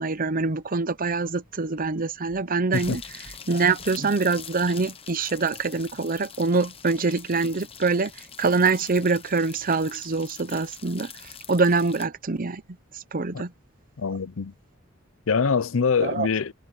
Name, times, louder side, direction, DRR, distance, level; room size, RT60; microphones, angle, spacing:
voice 1, 0.0-3.0 3.5-8.1 8.4-11.1 11.5-12.6 12.9-13.5 16.0-16.3, right 4 dB, 45° right, 0.8 m, -24 dB
sound 1, 2.7-12.1, left 7 dB, 30° left, 0.9 m, -44 dB
voice 2, 14.0-14.5 15.3-16.5, left 5 dB, 75° left, 0.6 m, -24 dB
head